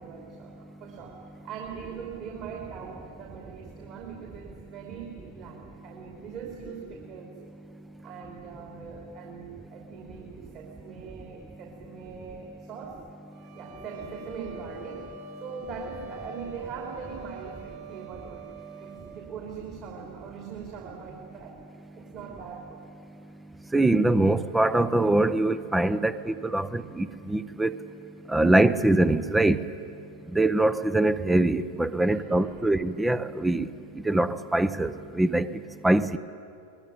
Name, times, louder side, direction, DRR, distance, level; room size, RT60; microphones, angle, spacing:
voice 1, 0.0-7.3 8.0-13.0 13.5-15.1 15.4-18.5 18.8-21.6 22.0-22.8 32.0-32.8, right 6 dB, 40° right, 0 dB, 3.2 m, -41 dB
sound 1, 13.3-19.4, right 2 dB, 55° right, 5.7 m, -45 dB
voice 2, 23.7-27.7 28.3-29.6 30.3-33.7 34.1-35.5 35.8-36.2, right 2 dB, 5° right, 14 dB, 0.7 m, -23 dB
23.0 x 21.0 x 9.9 m, 2.5 s
figure-of-eight pair, 90°, 0 cm